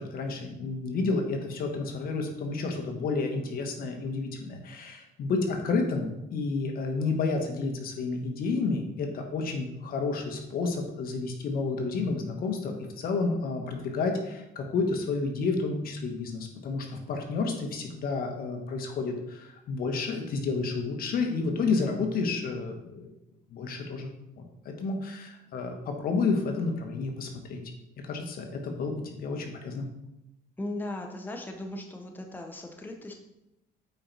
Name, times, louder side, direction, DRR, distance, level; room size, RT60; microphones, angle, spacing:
voice 1, 0.0-23.1 23.5-24.1 24.6-27.6 28.0-29.8, left 4 dB, 60° left, 3 dB, 1.4 m, -30 dB
voice 2, 30.6-33.1, left 1 dB, 10° left, 3 dB, 1.0 m, -37 dB
8.7 x 4.6 x 4.1 m, 0.88 s
cardioid pair, 110°, 17 cm